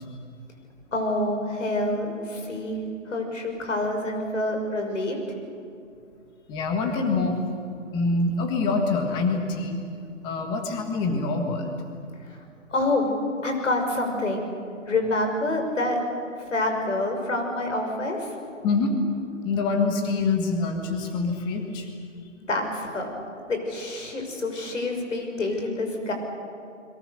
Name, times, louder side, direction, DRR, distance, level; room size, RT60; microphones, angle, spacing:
voice 1, 0.9-5.2 12.2-12.4 12.7-13.1 13.4-14.4 14.9-16.0 16.5-18.3 22.5-23.1 23.5-26.1, left 2 dB, 70° left, 4 dB, 6.1 m, -27 dB
voice 2, 6.5-7.5 7.9-9.8 10.2-11.8 18.6-19.0 19.4-21.9, left 3 dB, 10° left, 4 dB, 1.6 m, -25 dB
29.5 x 22.5 x 6.7 m, 2.5 s
hypercardioid pair, 160°, 39 cm